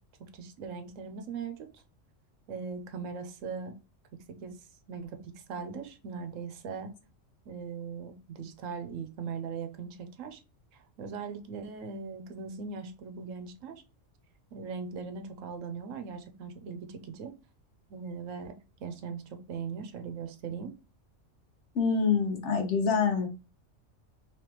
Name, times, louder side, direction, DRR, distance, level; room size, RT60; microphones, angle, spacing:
voice 1, 0.2-1.8 2.5-3.8 4.1-6.9 7.5-10.4 10.7-13.8 14.5-17.3 17.9-18.5 18.8-20.7, right 5 dB, 85° right, 1.1 m, -40 dB
voice 2, 21.7-23.3, left 5 dB, 65° left, 1.2 m, -26 dB
3.4 x 3.0 x 2.9 m
omnidirectional pair, 1.3 m